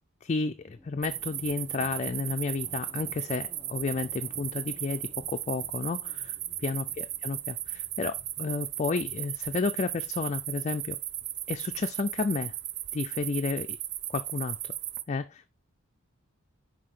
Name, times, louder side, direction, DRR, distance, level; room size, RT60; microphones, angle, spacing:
voice 1, 0.2-11.0 11.5-12.5 12.9-13.8 14.1-14.6 15.1-15.6, left 4 dB, 30° left, 0.4 m, -32 dB
sound 1, 0.7-12.2, left 1 dB, 10° left, 0.9 m, -56 dB
sound 2, 1.0-15.0, right 13 dB, 50° right, 0.5 m, -36 dB
5.7 x 5.0 x 4.9 m
head